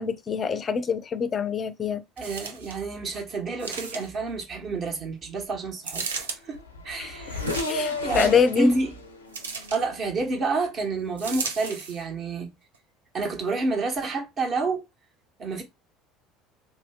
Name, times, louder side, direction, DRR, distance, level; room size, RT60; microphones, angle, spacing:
voice 1, 0.0-2.0 7.0-7.1 7.7-8.8, left 5 dB, 35° left, 0.5 m, -24 dB
voice 2, 2.2-6.6 6.8-7.5 8.0-8.9 9.7-12.5 13.1-14.8 15.4-15.6, right 3 dB, 40° right, 1.2 m, -29 dB
sound 1, 2.2-2.8 3.6-4.3 5.8-6.4 7.3-8.0 9.3-9.8 11.2-12.0 12.7-12.8, right 5 dB, 80° right, 0.5 m, -35 dB
Race car auto racing / Accelerating revving vroom, 6.2-6.3 6.5-10.5, left 2 dB, 90° left, 0.5 m, -33 dB
2.8 x 2.2 x 3.5 m
figure-of-eight pair, 65°, 0 cm